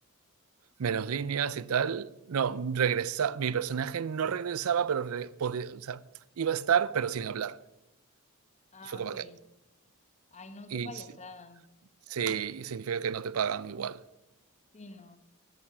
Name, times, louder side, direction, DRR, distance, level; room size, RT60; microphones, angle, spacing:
voice 1, 0.8-6.0 6.4-7.6 8.8-9.3 10.7-10.9 12.1-14.0, right 7 dB, 90° right, 0.5 m, -30 dB
voice 2, 8.7-9.4 10.3-11.6 14.7-15.2, left 3 dB, 35° left, 1.2 m, -47 dB
13.0 x 11.5 x 5.9 m
head